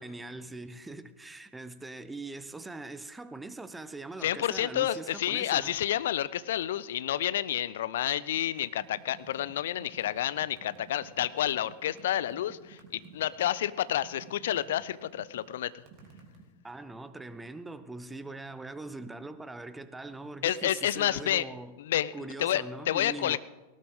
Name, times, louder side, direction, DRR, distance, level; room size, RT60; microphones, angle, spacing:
voice 1, 0.0-5.8 16.6-21.7 22.1-23.4, right 2 dB, 10° right, 0.8 m, -42 dB
voice 2, 4.2-15.8 20.4-21.4 21.8-23.4, left 12 dB, 60° left, 0.5 m, -30 dB
sound 1, 8.4-16.5, right 5 dB, 40° right, 2.9 m, -53 dB
18.5 x 18.0 x 3.7 m
figure-of-eight pair, 90°, 0 cm